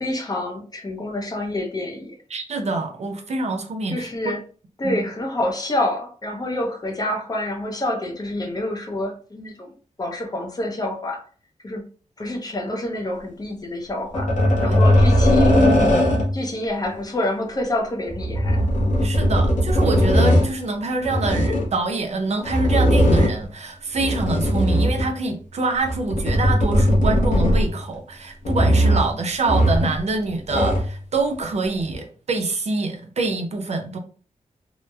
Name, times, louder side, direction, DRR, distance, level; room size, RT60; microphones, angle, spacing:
voice 1, 0.0-2.2 3.9-4.4 4.8-9.7 10.0-11.2 11.6-11.9 12.2-14.3 14.6-15.6 16.3-18.6, left 1 dB, 30° left, 0.5 m, -27 dB
voice 2, 2.3-4.4 4.8-5.0 14.6-14.8 19.0-34.0, right 3 dB, 60° right, 0.5 m, -25 dB
sound 1, 14.1-16.4 18.1-20.5 21.0-21.7 22.4-23.5 23.9-25.2 25.8-27.9 28.4-29.1 29.5-30.0 30.3-31.0 31.9-32.0, equal, 80° left, 0.7 m, -18 dB
2.9 x 2.0 x 2.2 m
wide cardioid pair, 120°, 13 cm